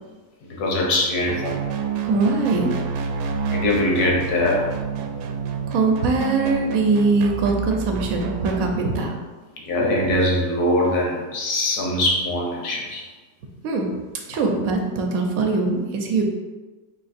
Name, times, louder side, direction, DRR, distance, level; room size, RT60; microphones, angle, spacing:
voice 1, 0.4-1.6 3.5-4.7 9.6-13.0, left 1 dB, 75° left, -2 dB, 1.5 m, -22 dB
sound 1, 1.3-8.7, right 5 dB, 90° right, 1.1 m, -29 dB
voice 2, 2.0-2.7 5.7-9.1 13.6-13.9 14.3-16.2, right 3 dB, 65° right, 2 dB, 1.1 m, -21 dB
4.5 x 2.8 x 4.2 m, 1.3 s
omnidirectional pair, 1.6 m